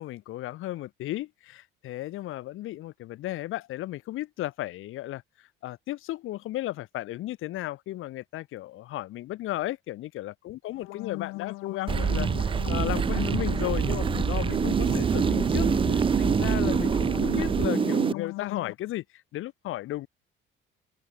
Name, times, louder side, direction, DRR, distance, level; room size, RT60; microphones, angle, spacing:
voice 1, 0.0-19.0 19.3-20.1, left 15 dB, 75° left, 3.5 m, -35 dB
sound 1, 10.8-18.7, left 22 dB, 90° left, 3.0 m, -37 dB
sound 2, 11.9-18.1, right 6 dB, 25° right, 0.5 m, -25 dB
cardioid pair, 100°, 21 cm